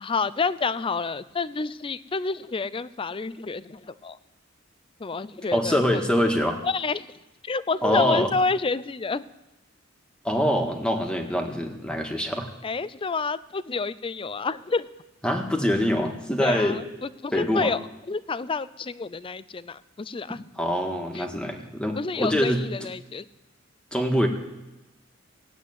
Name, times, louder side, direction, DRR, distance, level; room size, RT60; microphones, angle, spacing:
voice 1, 0.0-4.2 5.0-6.0 6.6-7.1 7.4-9.2 12.6-14.9 16.4-17.8 18.1-20.4 21.1-21.3 21.9-23.3, left 4 dB, 25° left, 16 dB, 0.5 m, -29 dB
voice 2, 5.5-6.6 7.8-8.3 10.2-12.5 15.2-16.8 17.3-17.7 20.6-22.6 23.9-24.3, equal, 5° left, 2 dB, 1.7 m, -24 dB
16.5 x 8.2 x 9.4 m, 1.0 s
head